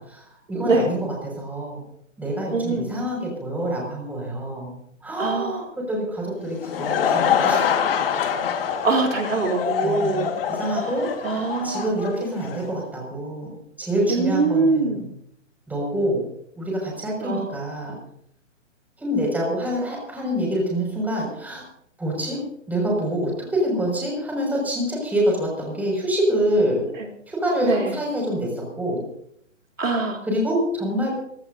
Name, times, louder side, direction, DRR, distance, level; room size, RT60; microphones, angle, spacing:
voice 1, 0.0-1.8 2.2-4.7 5.0-7.8 9.8-15.0 15.7-16.2 16.6-18.0 19.0-21.6 22.0-22.4 22.7-26.8 27.3-29.0 30.2-31.1, equal, 5° right, -2 dB, 6.1 m, -26 dB
voice 2, 0.6-0.9 2.5-2.9 5.2-5.6 8.8-10.3 11.2-11.9 14.1-15.0 17.2-17.5 27.6-27.9 29.8-30.2, right 3 dB, 85° right, 2 dB, 3.6 m, -23 dB
Laughter / Crowd, 6.4-12.7, left 8 dB, 45° left, 1.9 m, -25 dB
25.0 x 17.5 x 2.7 m, 0.71 s
hypercardioid pair, 140°, 38 cm